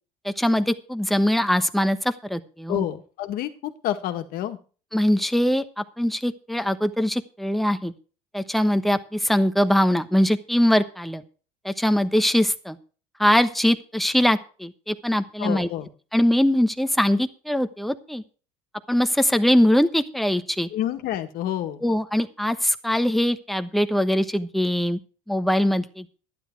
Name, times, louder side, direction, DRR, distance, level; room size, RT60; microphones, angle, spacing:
voice 1, 0.2-2.9 4.9-7.9 8.3-11.2 11.6-12.8 13.2-15.7 16.1-18.2 18.9-20.7 21.8-25.0 25.3-26.1, equal, ahead, 9 dB, 1.1 m, -22 dB
voice 2, 2.7-4.6 15.4-15.9 20.7-21.8, left 11 dB, 60° left, 7 dB, 1.8 m, -28 dB
12.0 x 10.5 x 4.6 m, 0.38 s
supercardioid pair, 105°, 17 cm